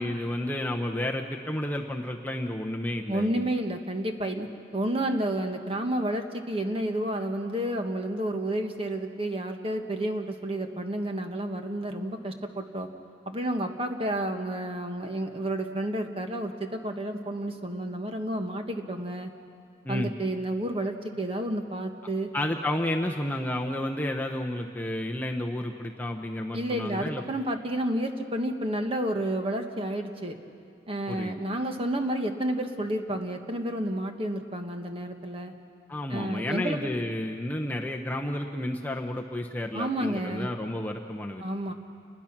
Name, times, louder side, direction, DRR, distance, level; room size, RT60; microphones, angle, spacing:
voice 1, 0.0-3.5 19.8-20.1 22.3-27.2 31.1-31.3 35.9-41.4, left 1 dB, 10° left, 1 dB, 0.8 m, -31 dB
voice 2, 3.1-4.5 4.7-12.9 13.3-19.3 19.9-22.3 26.5-30.3 30.9-35.5 36.1-36.8 39.7-40.5 41.4-41.7, right 1 dB, 30° right, 5 dB, 1.3 m, -30 dB
29.0 x 21.0 x 6.0 m, 2.4 s
head